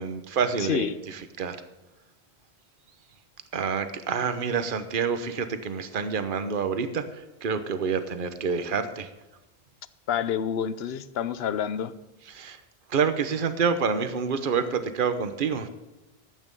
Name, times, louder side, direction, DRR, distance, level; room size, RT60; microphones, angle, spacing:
voice 1, 0.0-1.6 3.5-9.1 12.3-12.6 12.9-15.7, right 6 dB, 55° right, 10 dB, 1.1 m, -28 dB
voice 2, 0.6-1.0 10.1-11.9, left 8 dB, 75° left, 15 dB, 0.9 m, -28 dB
13.0 x 8.6 x 5.4 m, 1.1 s
omnidirectional pair, 1.0 m